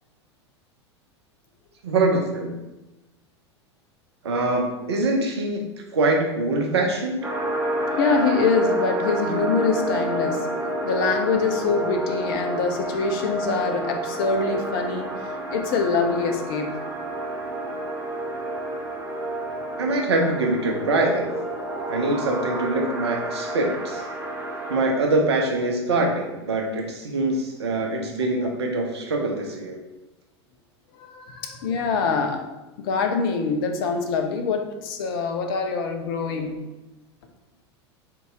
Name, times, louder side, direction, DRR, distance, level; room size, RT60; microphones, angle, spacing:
voice 1, 1.8-2.5 4.2-7.3 19.8-21.3 21.9-24.0 24.7-29.8, right 2 dB, 65° right, 2 dB, 0.8 m, -24 dB
sound 1, 7.2-24.8, right 1 dB, 15° right, 0.8 m, -29 dB
voice 2, 7.8-10.5 10.8-15.1 15.5-16.8 21.8-21.9 28.4-28.5 31.0-32.5 32.8-36.6, left 4 dB, 50° left, 4 dB, 0.6 m, -24 dB
4.0 x 2.8 x 3.6 m, 1.0 s
figure-of-eight pair, 85°, 15 cm